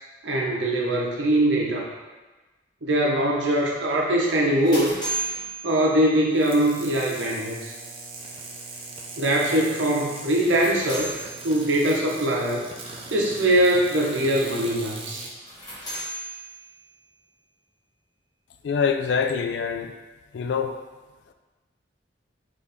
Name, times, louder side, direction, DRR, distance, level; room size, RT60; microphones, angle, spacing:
voice 1, 0.2-1.9 2.8-4.9 5.6-7.7 9.2-11.1 11.4-12.6 13.1-15.3, right 1 dB, 80° right, -2 dB, 0.8 m, -22 dB
sound 1, 4.2-6.5 10.2-11.9 15.3-17.1, right 2 dB, 25° left, 1.3 m, -35 dB
sound 2, 6.3-15.3, right 3 dB, 30° right, 0.5 m, -40 dB
voice 2, 18.6-19.9 20.3-20.7, left 6 dB, 65° left, 7 dB, 0.3 m, -24 dB
4.1 x 3.1 x 3.4 m, 1.2 s
head